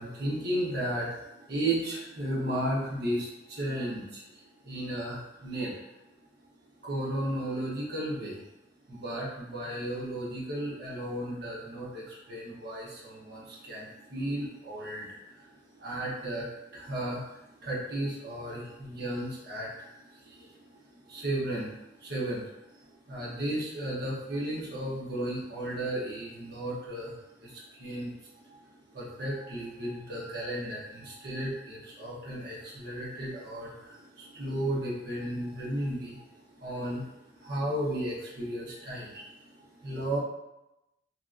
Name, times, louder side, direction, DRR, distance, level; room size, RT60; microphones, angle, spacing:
voice 1, 0.0-5.9 6.8-8.4 8.9-28.7 28.9-40.2, right 1 dB, 60° right, -5 dB, 0.9 m, -35 dB
3.0 x 2.9 x 2.4 m, 0.93 s
head